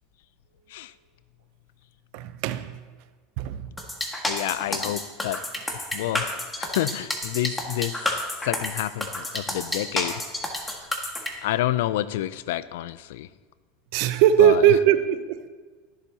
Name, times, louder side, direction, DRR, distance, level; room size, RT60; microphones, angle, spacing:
voice 1, 2.1-2.8 3.4-3.8 6.1-6.4 13.9-15.5, right 10 dB, 65° right, 12 dB, 0.7 m, -20 dB
sound 1, 3.8-11.3, left 1 dB, 10° left, 1.7 m, -29 dB
voice 2, 4.3-5.4 5.9-6.3 6.6-8.0 8.4-10.2 11.4-13.3 14.4-14.6, left 14 dB, 80° left, 17 dB, 0.4 m, -28 dB
21.5 x 7.2 x 2.9 m, 1.4 s
supercardioid pair, 105°, 0 cm